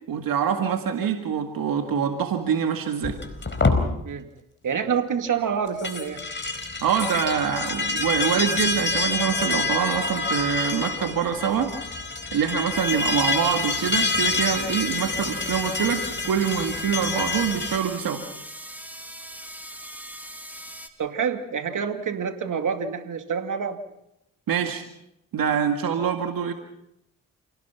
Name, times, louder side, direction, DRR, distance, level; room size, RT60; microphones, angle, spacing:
voice 1, 0.1-3.2 6.8-11.7 12.3-18.2 24.5-24.8 25.3-26.5, right 7 dB, 80° right, 5 dB, 2.0 m, -25 dB
sound 1, 3.0-3.8 5.7-17.8, left 3 dB, 35° left, 4.6 m, -27 dB
voice 2, 4.6-6.2 21.0-23.8, right 7 dB, 60° right, 6 dB, 2.5 m, -27 dB
sound 2, 11.9-12.0 12.7-20.9, equal, 5° right, 3.1 m, -40 dB
29.0 x 18.0 x 5.9 m, 0.82 s
cardioid pair, 60°, 34 cm